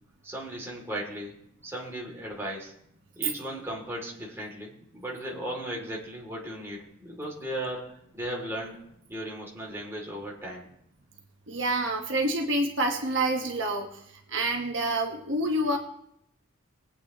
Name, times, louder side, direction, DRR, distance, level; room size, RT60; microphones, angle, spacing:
voice 1, 0.2-1.4 1.6-2.7 3.2-8.8 9.1-10.7, right 1 dB, 10° right, -3 dB, 2.7 m, -36 dB
voice 2, 11.5-13.9 14.3-15.8, right 1 dB, 65° right, 2 dB, 1.4 m, -27 dB
22.0 x 8.6 x 3.0 m, 0.74 s
head